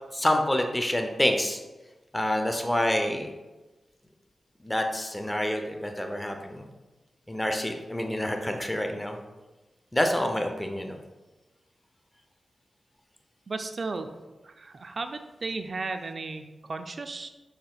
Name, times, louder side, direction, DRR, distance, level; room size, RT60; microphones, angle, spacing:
voice 1, 0.1-1.6 2.1-3.3 4.6-6.6 7.3-9.2 9.9-11.0, left 1 dB, 15° left, 4 dB, 0.6 m, -27 dB
voice 2, 13.5-14.1 14.4-17.3, right 3 dB, 55° right, 8 dB, 0.4 m, -35 dB
4.8 x 4.3 x 2.3 m, 1.1 s
cardioid pair, 45°, 0 cm